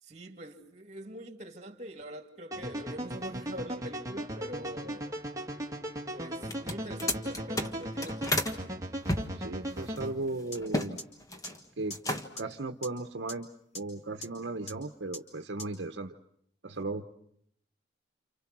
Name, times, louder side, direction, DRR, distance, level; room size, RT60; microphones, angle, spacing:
voice 1, 0.0-5.1 6.1-8.2, equal, 40° right, 2.7 m, -43 dB
sound 1, 2.5-10.1, right 1 dB, 20° right, 2.1 m, -37 dB
sound 2, 6.4-8.6 9.1-10.9 11.2-11.6 11.9-12.5, left 1 dB, 20° left, 1.5 m, -32 dB
voice 2, 9.3-11.0 11.8-12.0 12.3-13.5 13.7-16.1 16.6-17.0, right 2 dB, 75° right, 1.1 m, -36 dB
sound 3, 10.5-10.6 11.0-11.1 11.4-11.5 11.9-12.0 12.4-12.5 12.8-12.9 13.3-13.4 13.7-13.8 14.2-14.3 14.7-14.8 15.1-15.2 15.6-15.7, left 1 dB, 35° left, 4.8 m, -39 dB
29.0 x 29.0 x 6.2 m
head